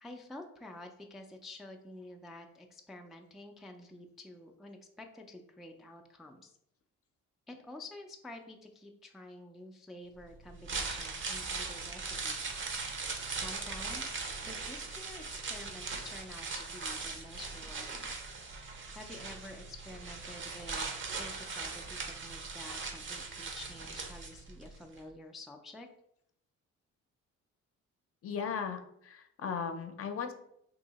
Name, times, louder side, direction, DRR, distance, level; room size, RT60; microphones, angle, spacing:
voice 1, 0.0-6.6 7.5-12.6 13.0-18.1 18.9-20.9 21.2-25.9, left 1 dB, ahead, 2 dB, 0.3 m, -49 dB
sound 1, 10.5-24.7 25.0-25.1, right 4 dB, 40° right, 0.7 m, -39 dB
voice 2, 28.2-30.3, left 6 dB, 50° left, 7 dB, 0.5 m, -37 dB
2.7 x 2.7 x 3.9 m, 0.74 s
cardioid pair, 90°, 30 cm